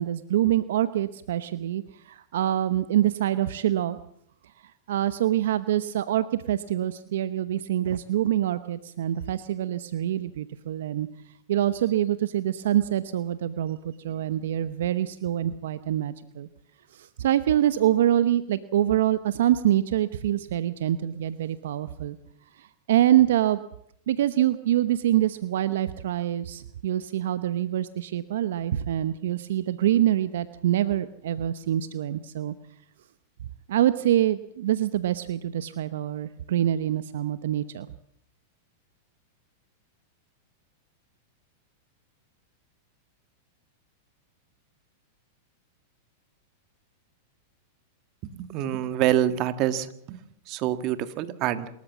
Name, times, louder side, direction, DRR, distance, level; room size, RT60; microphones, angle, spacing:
voice 1, 0.0-4.0 4.9-11.1 11.5-16.5 16.9-22.2 22.6-23.6 24.1-32.5 33.7-37.9, right 12 dB, 75° right, 13 dB, 0.9 m, -25 dB
voice 2, 48.2-50.2 50.5-51.7, right 12 dB, 45° right, 11 dB, 1.8 m, -26 dB
27.5 x 13.5 x 7.4 m, 0.71 s
hypercardioid pair, 115°, 0 cm